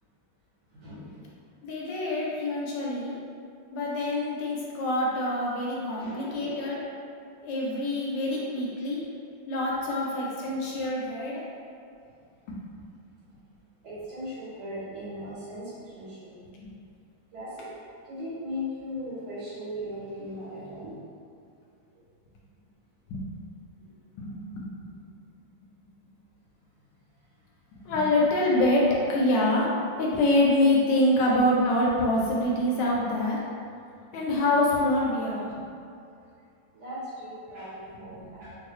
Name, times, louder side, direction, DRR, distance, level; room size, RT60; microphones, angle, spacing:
voice 1, 0.7-1.3 5.9-6.8 8.2-8.4 9.8-9.9 13.8-16.3 17.3-17.7 18.0-21.0 31.0-31.3 36.7-38.6, left 1 dB, 60° right, -11 dB, 1.9 m, -38 dB
voice 2, 1.6-3.2 3.7-6.8 7.4-9.0 9.5-11.4 16.5-16.7 23.1-23.2 24.2-24.9 27.8-29.7 30.0-33.4 34.1-35.5 38.1-38.2, left 1 dB, 75° left, -4 dB, 1.1 m, -25 dB
3.8 x 2.2 x 3.0 m, 2.5 s
omnidirectional pair, 2.1 m